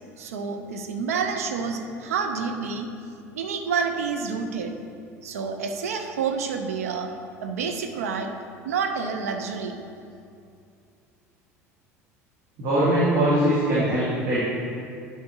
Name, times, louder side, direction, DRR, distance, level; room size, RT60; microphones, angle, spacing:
voice 1, 0.2-2.9 3.3-4.7 5.2-8.3 8.6-9.8, right 5 dB, 70° right, 5 dB, 0.6 m, -28 dB
voice 2, 12.6-14.4, right 1 dB, 50° right, -9 dB, 1.7 m, -21 dB
11.0 x 4.9 x 2.8 m, 2.4 s
figure-of-eight pair, 65°, 8 cm